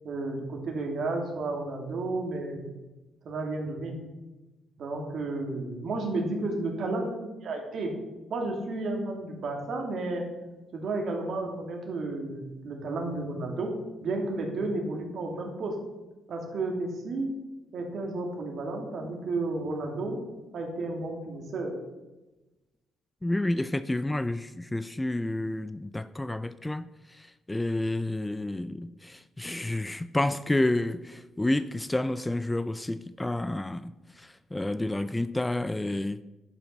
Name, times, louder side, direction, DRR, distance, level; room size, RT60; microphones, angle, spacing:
voice 1, 0.0-2.7 3.2-4.0 4.8-7.9 8.3-10.3 10.7-15.8 16.3-17.3 17.7-20.2 20.5-21.7, right 2 dB, 60° right, 2.6 m, -32 dB
voice 2, 23.2-26.9 27.5-33.9 34.2-36.2, left 1 dB, 10° left, 0.4 m, -29 dB
11.0 x 5.6 x 5.9 m
cardioid pair, 90°, 0 cm